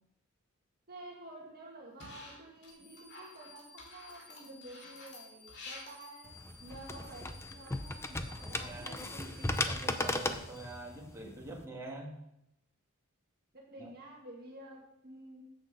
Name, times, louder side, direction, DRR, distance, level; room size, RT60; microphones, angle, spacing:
voice 1, 0.9-9.3 13.5-15.4, right 1 dB, 45° right, -1 dB, 1.8 m, -50 dB
sound 1, 2.0-2.7 3.0-7.3, left 2 dB, 55° left, 2.5 m, -51 dB
sound 2, 2.7-11.1, left 3 dB, 80° left, 2.8 m, -55 dB
sound 3, 6.3-11.6, left 2 dB, 10° left, 0.5 m, -37 dB
voice 2, 8.4-12.1 13.8-13.9, right 2 dB, 15° right, -2 dB, 1.8 m, -45 dB
7.8 x 7.1 x 6.7 m, 0.84 s
head